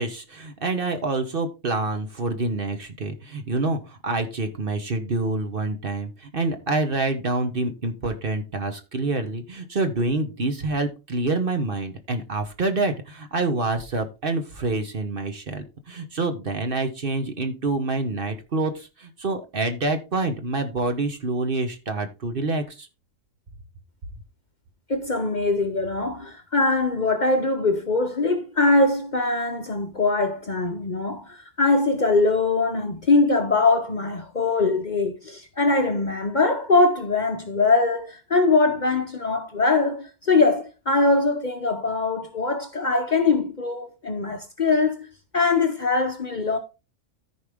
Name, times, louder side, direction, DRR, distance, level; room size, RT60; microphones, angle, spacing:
voice 1, 0.0-22.9, right 3 dB, 45° right, 1.1 m, -27 dB
voice 2, 24.9-45.1 45.3-46.6, left 3 dB, 40° left, 0.8 m, -22 dB
13.5 x 4.9 x 3.5 m
omnidirectional pair, 1.4 m